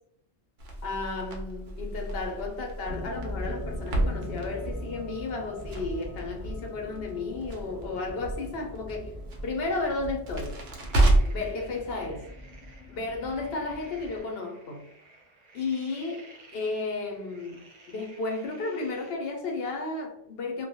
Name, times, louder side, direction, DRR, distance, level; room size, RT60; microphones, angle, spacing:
Crackle, 0.6-11.5, right 1 dB, 75° right, 0.9 m, -30 dB
voice 1, 0.8-9.1 9.4-10.6 11.3-12.3 12.9-14.8 15.5-20.7, left 3 dB, 70° left, 0.8 m, -33 dB
sound 1, 2.9-14.2, left 1 dB, 20° right, 0.9 m, -41 dB
sound 2, 10.6-19.1, right 2 dB, 55° right, 0.5 m, -55 dB
2.3 x 2.2 x 2.7 m
omnidirectional pair, 1.1 m